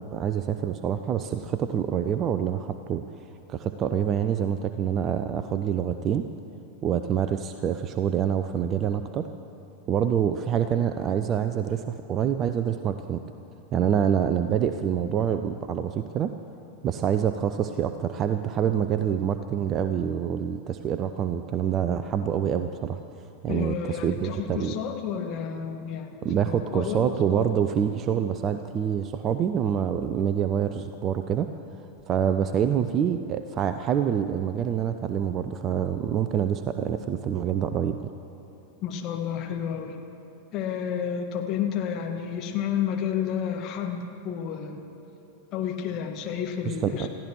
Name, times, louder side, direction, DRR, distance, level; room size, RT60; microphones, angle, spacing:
voice 1, 0.0-3.0 3.5-6.3 6.8-9.3 9.9-13.2 13.7-16.3 16.8-23.0 23.4-24.8 26.2-31.5 32.1-38.1 46.6-47.1, right 8 dB, 30° right, 9 dB, 0.5 m, -26 dB
voice 2, 23.5-27.5 38.8-40.0 40.5-44.8 45.5-47.1, left 8 dB, 35° left, 3 dB, 1.7 m, -31 dB
28.0 x 15.5 x 3.1 m, 3.0 s
figure-of-eight pair, 90°, 0 cm